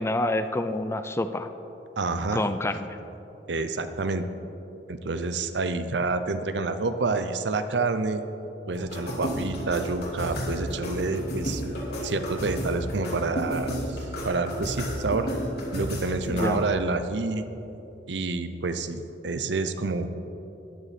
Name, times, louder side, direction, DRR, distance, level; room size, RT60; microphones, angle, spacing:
voice 1, 0.0-1.5 2.3-2.9 16.3-16.6, left 1 dB, 15° left, 10 dB, 0.4 m, -27 dB
voice 2, 2.0-2.4 3.5-4.3 4.9-8.2 8.7-11.6 12.0-13.8 14.2-15.3 15.7-17.4 18.1-20.1, right 3 dB, 70° right, 10 dB, 0.7 m, -28 dB
sound 1, 8.7-16.7, equal, 60° left, 2.9 m, -32 dB
13.5 x 10.0 x 4.3 m, 3.0 s
head